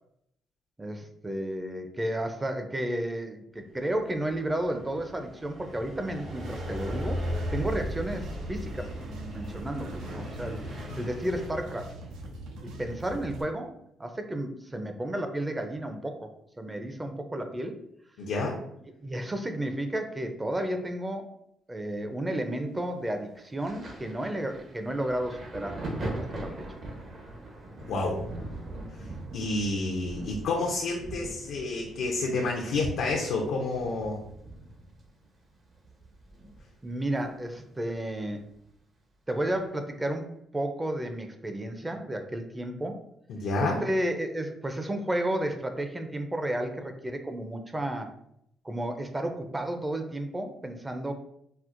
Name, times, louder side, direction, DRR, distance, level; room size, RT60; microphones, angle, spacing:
voice 1, 0.8-7.2 7.5-10.6 11.0-11.9 12.6-13.7 14.0-16.3 16.6-17.8 19.0-21.3 21.7-25.8 26.1-26.7 36.8-38.4 39.3-43.0 43.6-48.1 48.6-51.1, right 1 dB, 15° right, 6 dB, 0.5 m, -32 dB
sound 1, 3.9-11.5, equal, 70° right, 1.2 m, -37 dB
sound 2, 6.4-13.4, right 1 dB, 85° right, 0.4 m, -42 dB
voice 2, 18.2-18.6 27.8-28.2 29.0-29.1 29.3-34.2 43.3-43.8, left 3 dB, 80° left, -1 dB, 0.5 m, -29 dB
Thunder, 23.6-37.0 37.2-38.6 39.4-39.6, right 1 dB, 55° right, 0.9 m, -41 dB
4.3 x 2.0 x 2.5 m, 0.75 s
cardioid pair, 90°, 0 cm